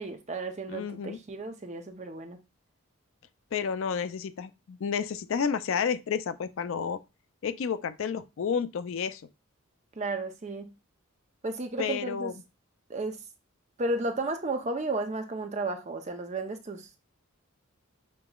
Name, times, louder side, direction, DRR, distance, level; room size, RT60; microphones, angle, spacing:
voice 1, 0.0-2.4 9.9-10.7 11.4-12.3 12.9-13.2 13.8-16.9, right 2 dB, 30° right, 0.6 m, -33 dB
voice 2, 0.7-1.2 3.5-7.0 7.4-9.2 11.8-12.3, left 6 dB, 65° left, 0.4 m, -31 dB
6.7 x 2.9 x 2.3 m
head